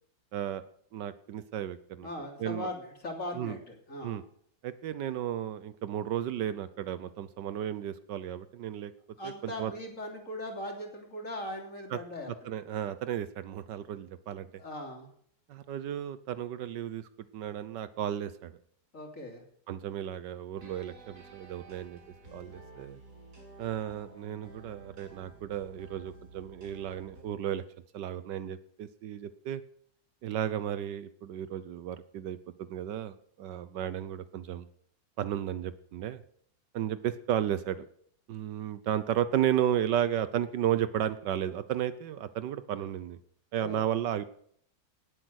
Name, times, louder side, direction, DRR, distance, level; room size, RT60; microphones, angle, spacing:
voice 1, 0.3-0.6 0.9-2.1 2.4-2.7 3.3-3.6 4.0-4.2 4.6-8.9 9.2-9.7 11.9-12.0 12.4-14.5 15.5-17.1 17.3-18.5 19.7-22.0 22.3-23.0 23.6-27.6 27.9-29.6 30.2-34.7 35.2-36.2 36.7-37.9 38.3-43.2 43.5-44.3, right 10 dB, 70° right, 14 dB, 1.4 m, -33 dB
voice 2, 2.0-4.2 9.2-12.5 14.6-15.1 18.9-19.4 43.6-43.8, left 1 dB, 45° left, 2 dB, 3.3 m, -39 dB
sound 1, 20.6-27.2, right 2 dB, 55° right, 4.7 m, -52 dB
18.0 x 8.0 x 6.4 m, 0.65 s
omnidirectional pair, 2.0 m